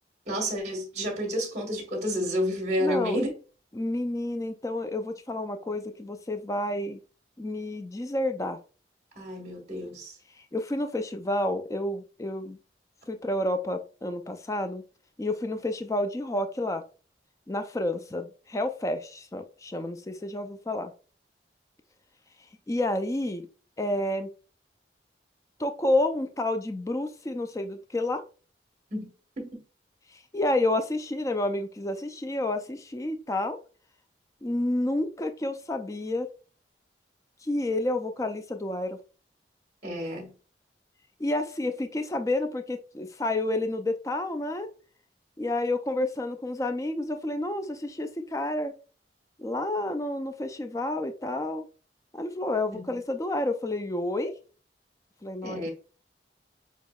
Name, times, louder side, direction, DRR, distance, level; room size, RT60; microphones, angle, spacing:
voice 1, 0.3-3.3 9.1-10.2 28.9-29.1 29.4-29.6 39.8-40.3 52.7-52.9 55.4-55.7, equal, 40° right, 1.4 m, -30 dB
voice 2, 2.8-3.2 3.8-7.0 7.4-8.6 10.4-12.6 13.1-14.8 15.2-16.8 17.5-20.9 22.7-23.5 23.8-24.3 25.6-28.2 30.1-33.6 34.4-36.3 37.4-39.0 41.2-44.7 45.4-48.7 49.4-51.6 52.1-54.3 55.2-55.7, left 1 dB, 20° left, 0.4 m, -30 dB
6.2 x 2.9 x 2.3 m
head